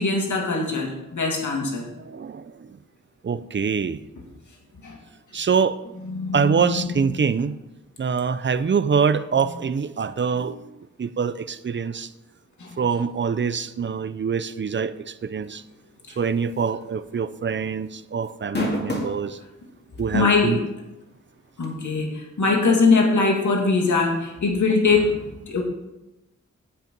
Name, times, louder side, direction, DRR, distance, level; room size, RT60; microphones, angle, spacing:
voice 1, 0.0-1.9 4.8-5.0 6.1-6.6 10.3-10.5 12.6-12.8 16.1-16.2 20.1-20.6 21.6-25.6, left 4 dB, 75° left, 0 dB, 2.2 m, -22 dB
voice 2, 2.0-2.8 3.2-4.0 5.3-5.8 6.3-7.6 8.0-10.6 11.0-12.1 12.8-15.6 16.2-19.4 20.0-20.6, right 6 dB, 40° right, 14 dB, 0.6 m, -24 dB
sound 1, 16.6-16.8 17.2-17.3 18.3-19.2 20.0-20.1 21.6-21.7, left 2 dB, 35° left, 2.2 m, -27 dB
9.3 x 8.2 x 5.3 m, 0.98 s
wide cardioid pair, 90°, 30 cm